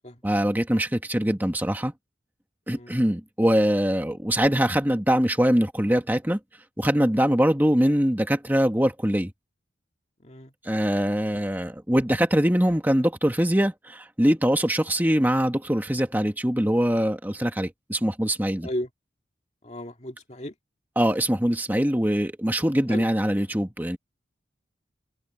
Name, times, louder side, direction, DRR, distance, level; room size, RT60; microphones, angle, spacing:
voice 1, 0.2-1.9 2.7-6.4 6.8-9.3 10.6-18.7 20.9-24.0, equal, 10° right, 1.6 m, -23 dB
voice 2, 19.6-20.5 22.9-23.0, equal, 35° left, 2.2 m, -34 dB
head